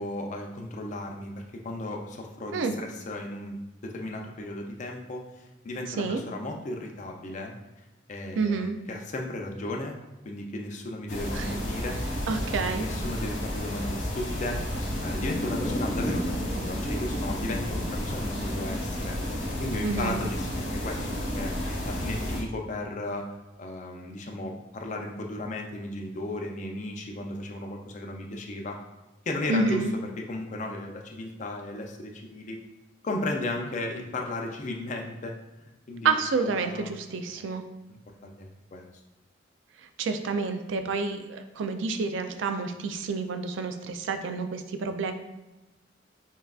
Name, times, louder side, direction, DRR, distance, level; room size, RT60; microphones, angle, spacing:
voice 1, 0.0-3.6 3.8-9.9 10.2-12.0 12.5-14.6 15.0-19.2 19.6-21.5 21.8-23.3 23.6-28.8 29.3-29.8 30.2-32.6 33.0-35.3 35.9-36.9 37.9-38.9, left 2 dB, 40° left, 1 dB, 0.5 m, -35 dB
voice 2, 8.4-8.8 11.3-11.5 12.3-12.9 19.8-20.2 29.5-29.9 36.0-37.6 40.0-45.1, right 4 dB, 75° right, 8 dB, 0.4 m, -29 dB
sound 1, 11.1-22.4, equal, 85° left, 1.0 m, -31 dB
5.4 x 2.4 x 2.4 m, 1.0 s
head